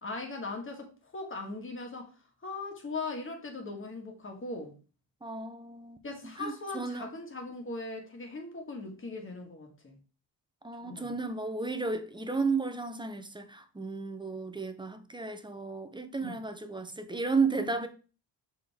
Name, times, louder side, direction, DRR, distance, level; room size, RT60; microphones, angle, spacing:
voice 1, 0.0-2.1 2.4-4.7 6.0-9.9 10.8-11.1 16.2-16.3 17.6-17.7, left 3 dB, 30° left, 1.6 m, -39 dB
voice 2, 5.2-6.0 6.2-7.1 10.6-17.9, right 4 dB, 10° right, 0.6 m, -33 dB
6.7 x 4.5 x 3.5 m
wide cardioid pair, 145°, 44 cm